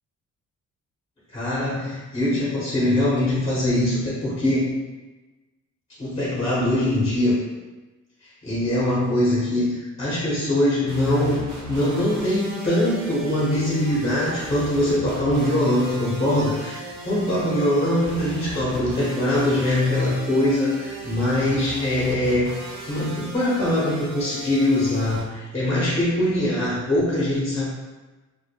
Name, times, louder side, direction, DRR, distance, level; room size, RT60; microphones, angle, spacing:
voice 1, 1.3-4.8 6.0-7.4 8.2-11.4 11.7-27.7, left 1 dB, 20° left, -8 dB, 0.8 m, -22 dB
sound 1, 10.9-25.2, right 2 dB, 80° right, 0.7 m, -37 dB
2.1 x 2.1 x 2.8 m, 1.2 s
cardioid pair, 90°, 30 cm